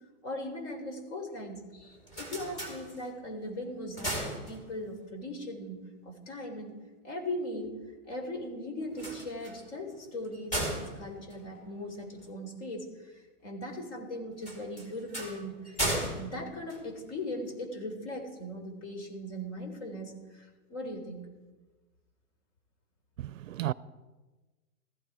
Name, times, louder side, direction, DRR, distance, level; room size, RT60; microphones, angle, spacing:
voice 1, 0.2-6.7 7.0-7.7 8.0-13.1 13.4-21.3, left 1 dB, 50° left, 3.9 m, -39 dB
sound 1, 1.8-3.4 3.7-5.1 8.8-12.3 14.4-17.4, right 1 dB, 15° left, 2.6 m, -37 dB
voice 2, 23.2-23.7, right 14 dB, 60° right, 0.5 m, -33 dB
17.0 x 14.5 x 4.9 m
hypercardioid pair, 165°, 45 cm